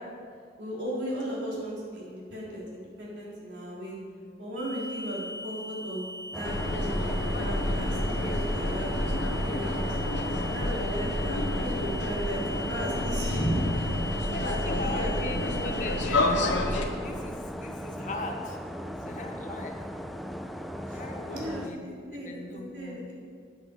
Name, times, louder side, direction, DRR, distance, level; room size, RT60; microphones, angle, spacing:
voice 1, 0.6-4.0 4.4-6.0 6.3-10.0 10.4-15.7 16.1-16.2 20.9-21.0 21.3-23.1, equal, 85° right, -5 dB, 3.8 m, -36 dB
sound 1, 4.6-16.0, equal, 40° right, 2.4 m, -40 dB
sound 2, 6.3-21.7, equal, ahead, 0.4 m, -38 dB
sound 3, 6.4-16.9, left 1 dB, 90° left, 1.1 m, -29 dB
voice 2, 14.2-19.8 20.9-23.0, left 2 dB, 40° left, 3 dB, 1.2 m, -39 dB
13.0 x 9.1 x 5.3 m, 2.1 s
head